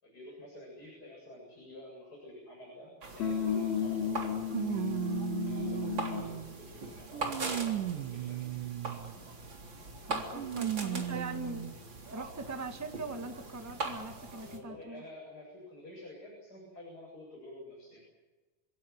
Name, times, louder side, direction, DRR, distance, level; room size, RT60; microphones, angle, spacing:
voice 1, 0.0-4.9 5.4-8.6 9.9-10.8 14.3-18.1, left 1 dB, 25° left, -2 dB, 8.3 m, -50 dB
sound 1, 3.0-14.6, right 3 dB, 35° right, 4.1 m, -42 dB
sound 2, 3.2-6.4, left 8 dB, 90° left, 5.4 m, -33 dB
sound 3, 3.3-3.4 4.5-6.6 7.1-9.2 10.3-11.8 12.5-12.6 13.7-13.8, right 12 dB, 70° right, 2.3 m, -36 dB
voice 2, 10.1-11.8 12.1-15.0, right 3 dB, 10° right, 5 dB, 0.9 m, -41 dB
28.5 x 17.5 x 9.8 m, 1.2 s
omnidirectional pair, 4.1 m